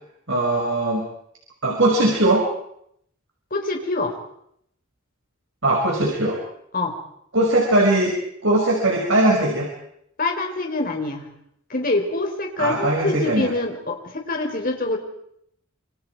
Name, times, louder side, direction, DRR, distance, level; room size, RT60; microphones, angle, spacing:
voice 1, 0.3-1.1 1.6-2.5 5.6-6.4 7.3-8.2 8.4-9.7 12.6-13.5, right 1 dB, 70° right, -1 dB, 5.6 m, -20 dB
voice 2, 3.5-4.1 6.7-6.9 10.2-11.3 11.7-15.0, left 2 dB, 45° left, 2 dB, 4.4 m, -25 dB
27.5 x 26.0 x 4.8 m, 0.72 s
head